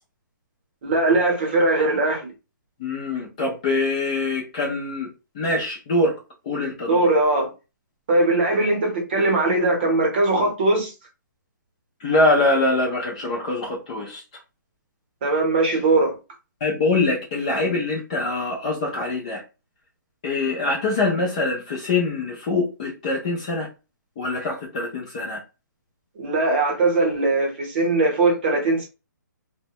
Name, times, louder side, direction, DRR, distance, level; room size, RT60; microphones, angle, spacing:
voice 1, 0.8-2.3 6.9-7.5 8.1-10.9 15.2-16.2 26.2-28.9, right 2 dB, 30° right, 0.8 m, -20 dB
voice 2, 2.8-5.1 5.3-6.2 6.4-7.1 12.0-14.2 16.6-19.4 20.2-23.7 24.2-25.4, left 2 dB, 20° left, 0.4 m, -24 dB
2.6 x 2.1 x 2.8 m
hypercardioid pair, 175°, 11 cm